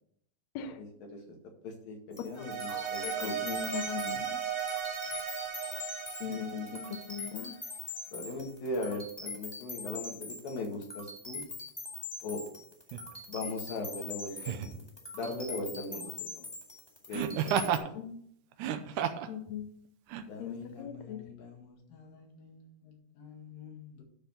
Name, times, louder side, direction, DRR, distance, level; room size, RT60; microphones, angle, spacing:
voice 1, 0.5-0.8 2.4-4.4 6.2-7.6 17.9-18.2 19.3-19.7 20.4-21.2, left 8 dB, 70° left, 7 dB, 1.8 m, -40 dB
voice 2, 1.6-3.4 6.2-6.7 8.1-11.4 12.2-12.4 13.3-14.8 15.1-16.5 17.1-17.9 20.3-24.0, left 2 dB, 90° left, 1 dB, 3.7 m, -40 dB
sound 1, 2.1-17.8, left 3 dB, 10° left, 1.3 m, -43 dB
sound 2, 2.4-7.7, right 7 dB, 50° right, 2.2 m, -37 dB
Laughter, 12.9-13.1 14.4-14.8 17.1-17.9 18.5-19.3 20.1-20.2, right 9 dB, 75° right, 2.0 m, -31 dB
11.5 x 4.0 x 7.7 m, 0.68 s
omnidirectional pair, 3.9 m